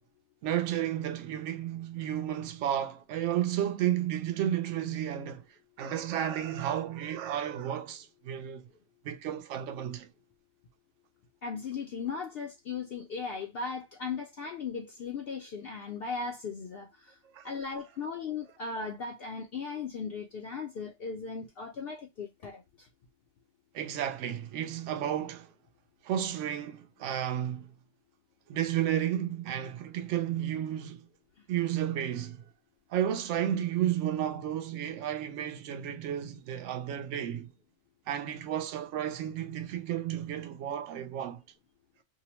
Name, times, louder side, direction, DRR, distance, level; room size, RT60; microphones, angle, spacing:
voice 1, 0.4-5.4 5.8-8.7 9.0-10.1 17.3-17.5 23.7-25.5 26.0-27.7 28.5-31.1 31.5-32.4 32.9-37.5 38.1-41.4, right 10 dB, 70° right, 0.9 m, -32 dB
voice 2, 11.4-17.1 17.4-22.9, left 5 dB, 65° left, 0.6 m, -37 dB
2.8 x 2.1 x 2.8 m
omnidirectional pair, 1.4 m